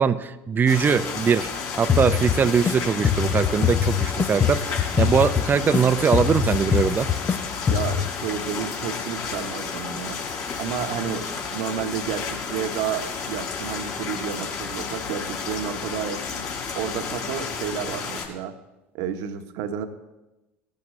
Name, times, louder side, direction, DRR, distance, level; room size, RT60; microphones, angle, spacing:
voice 1, 0.0-1.5 1.8-7.1, right 6 dB, 30° right, 12 dB, 0.6 m, -21 dB
sound 1, 0.7-18.2, left 5 dB, 55° left, 3.7 m, -32 dB
sound 2, 1.9-2.7 3.0-5.8 6.1-7.4 7.7-8.1, left 8 dB, 30° left, 0.8 m, -23 dB
voice 2, 7.7-10.2 10.6-16.5 16.7-18.5 18.9-19.9, right 8 dB, 65° right, 8 dB, 1.2 m, -31 dB
18.5 x 10.5 x 3.2 m, 1.0 s
hypercardioid pair, 80°, 7 cm